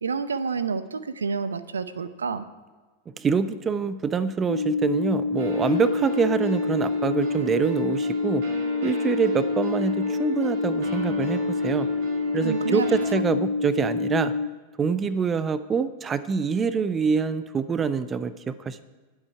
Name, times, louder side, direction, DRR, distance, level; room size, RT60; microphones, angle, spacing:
voice 1, 0.0-2.5 12.4-12.9 13.1-13.2, right 5 dB, 70° right, 14 dB, 0.7 m, -29 dB
voice 2, 3.2-8.4 8.8-11.9 12.3-14.3 14.8-18.8, right 5 dB, 20° right, 15 dB, 0.6 m, -25 dB
sound 1, 4.5-14.5, left 4 dB, 90° left, 0.5 m, -27 dB
sound 2, 5.4-13.1, right 3 dB, 50° right, 4.9 m, -37 dB
20.5 x 8.0 x 4.6 m, 1.3 s
figure-of-eight pair, 90°, 0 cm